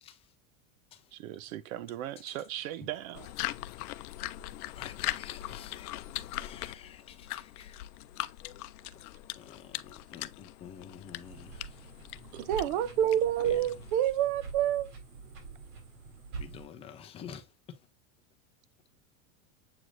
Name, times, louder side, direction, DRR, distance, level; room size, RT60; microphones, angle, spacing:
voice 1, 1.1-3.3 12.3-12.7, right 13 dB, 70° right, 0.8 m, -39 dB
sound 1, 3.1-14.0, left 16 dB, 90° left, 0.6 m, -40 dB
voice 2, 4.8-7.8 8.9-9.0 9.4-11.8 13.4-13.7 16.4-17.5, left 8 dB, 15° left, 0.5 m, -49 dB
sound 2, 11.2-16.6, right 4 dB, 85° right, 3.8 m, -46 dB
voice 3, 12.5-14.9, right 10 dB, 35° right, 0.5 m, -27 dB
7.8 x 4.7 x 2.5 m
supercardioid pair, 170°, 44 cm